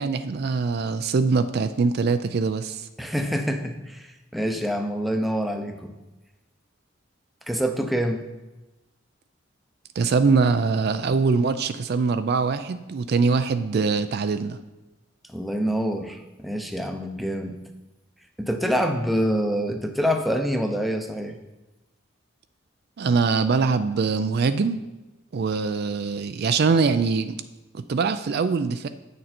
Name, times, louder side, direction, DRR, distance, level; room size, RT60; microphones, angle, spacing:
voice 1, 0.0-2.9 10.0-14.6 23.0-24.8 25.3-27.4 27.7-28.9, right 4 dB, 55° right, 10 dB, 0.4 m, -23 dB
voice 2, 3.0-5.9 7.5-8.2 15.3-17.6 18.4-21.4, equal, ahead, 4 dB, 0.7 m, -26 dB
8.8 x 6.6 x 4.3 m, 1.0 s
head